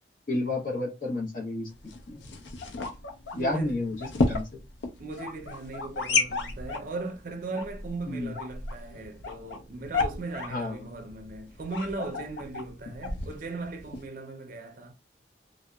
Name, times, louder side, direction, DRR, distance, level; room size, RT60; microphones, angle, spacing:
voice 1, 0.3-2.2 3.4-4.6 8.1-8.3 10.5-10.8, left 2 dB, 50° left, 0.8 m, -31 dB
sound 1, 1.7-14.1, left 3 dB, 85° left, 0.5 m, -33 dB
voice 2, 3.3-3.8 5.0-14.9, right 3 dB, 50° right, 0.4 m, -38 dB
2.7 x 2.0 x 2.2 m
head